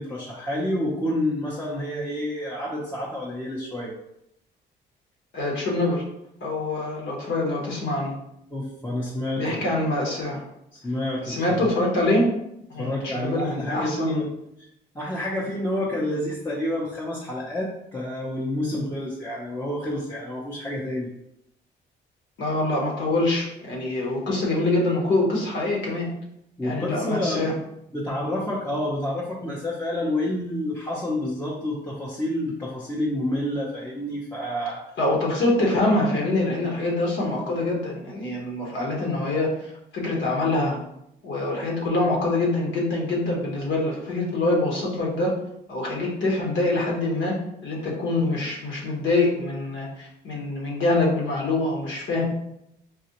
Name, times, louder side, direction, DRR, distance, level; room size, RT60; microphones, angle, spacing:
voice 1, 0.0-3.9 8.5-9.6 10.7-11.7 12.8-14.2 14.6-14.7 14.9-21.1 26.6-27.5 27.9-34.8, left 1 dB, 10° left, -6 dB, 0.7 m, -29 dB
voice 2, 5.3-6.0 6.4-8.1 9.4-10.4 11.2-12.3 12.7-14.2 22.4-26.1 26.6-27.5 35.0-40.8 41.2-45.3 45.7-47.4 47.6-52.2, left 2 dB, 70° left, -3 dB, 1.2 m, -25 dB
4.0 x 2.4 x 2.9 m, 0.80 s
cardioid pair, 90°, 20 cm